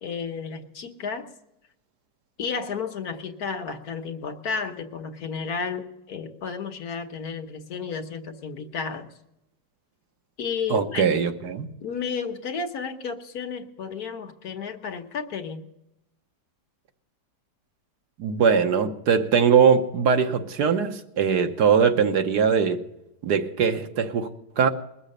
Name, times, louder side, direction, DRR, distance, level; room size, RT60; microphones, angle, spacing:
voice 1, 0.0-1.3 2.4-9.1 10.4-11.1 11.8-15.7, left 5 dB, 65° left, 1.5 m, -32 dB
voice 2, 10.7-11.7 18.2-22.8 23.2-24.3 24.6-24.7, right 6 dB, 70° right, 1.6 m, -21 dB
21.0 x 7.2 x 6.5 m
omnidirectional pair, 1.8 m